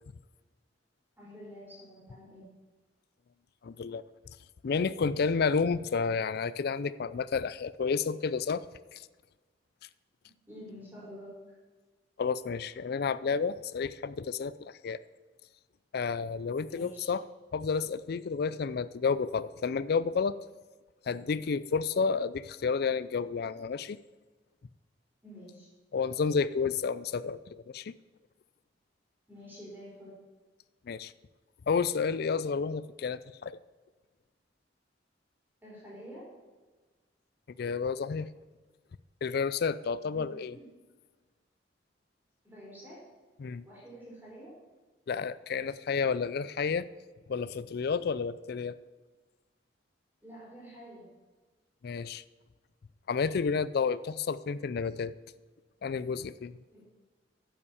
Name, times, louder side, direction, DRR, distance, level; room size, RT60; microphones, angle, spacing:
voice 1, 1.2-2.4 10.5-11.3 16.7-17.1 25.2-25.7 29.3-30.1 35.6-36.3 40.1-40.7 42.4-43.0 43.6-44.5 50.2-51.0 56.7-56.8, equal, 10° right, -6 dB, 4.1 m, -48 dB
voice 2, 3.6-4.0 4.6-8.6 8.9-9.1 12.2-15.0 15.9-17.2 17.5-20.4 21.1-24.0 25.9-27.9 30.9-31.1 31.7-33.6 37.6-38.3 39.2-40.5 43.4-43.6 45.1-46.9 47.3-48.8 51.8-52.2 53.1-55.1 55.8-56.5, left 5 dB, 60° left, 16 dB, 0.4 m, -31 dB
10.0 x 6.9 x 7.2 m, 1.3 s
head